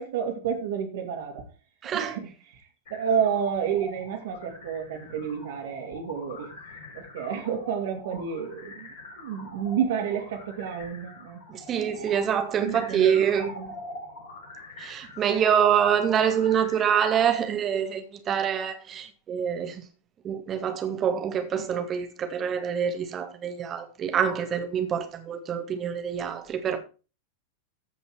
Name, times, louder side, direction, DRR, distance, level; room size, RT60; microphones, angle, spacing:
voice 1, 0.0-1.4 1.9-2.6 2.9-6.5 6.9-11.6 12.6-13.7 21.6-21.7, right 7 dB, 55° right, 2.8 m, -30 dB
voice 2, 1.8-2.2 11.5-13.5 14.8-19.9 20.2-26.8, right 8 dB, 25° right, 2.1 m, -26 dB
Underwater Police Siren, 2.9-17.2, left 2 dB, 55° left, 6.7 m, -44 dB
15.0 x 5.4 x 4.7 m
figure-of-eight pair, 90°, 0 cm